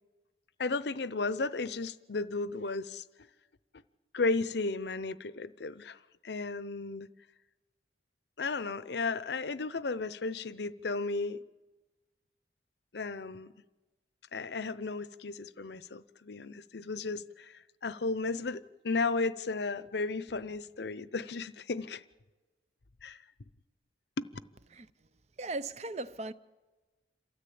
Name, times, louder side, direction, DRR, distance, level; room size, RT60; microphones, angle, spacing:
voice 1, 0.6-3.0 4.1-6.0 6.2-7.1 8.4-11.4 12.9-13.5 14.3-22.0 23.0-23.2 24.2-24.3, left 3 dB, 65° left, 0.7 m, -34 dB
voice 2, 25.4-26.3, right 2 dB, 35° right, 0.6 m, -37 dB
27.5 x 13.5 x 8.6 m
head